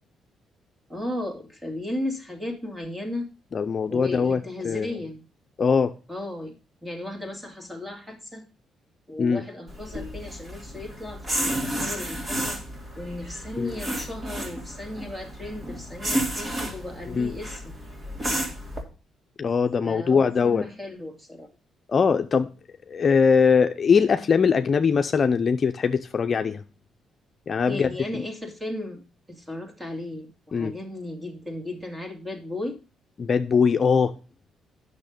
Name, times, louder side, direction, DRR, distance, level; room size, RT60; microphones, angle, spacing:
voice 1, 0.9-3.3 3.9-5.2 6.1-6.6 6.8-8.4 9.1-12.6 13.0-17.7 19.8-21.5 27.7-29.0 29.3-32.8, left 1 dB, 10° right, 4 dB, 2.3 m, -35 dB
voice 2, 3.5-4.9 5.6-5.9 9.2-9.4 13.6-13.7 17.1-17.3 19.4-20.7 21.9-22.5 22.9-26.6 27.5-28.2 30.5-30.7 33.2-34.1, left 5 dB, 45° left, 7 dB, 0.6 m, -21 dB
sound 1, 9.7-18.8, right 1 dB, 35° right, 2.8 m, -32 dB
8.8 x 6.5 x 5.0 m, 0.33 s
cardioid pair, 90°, 0 cm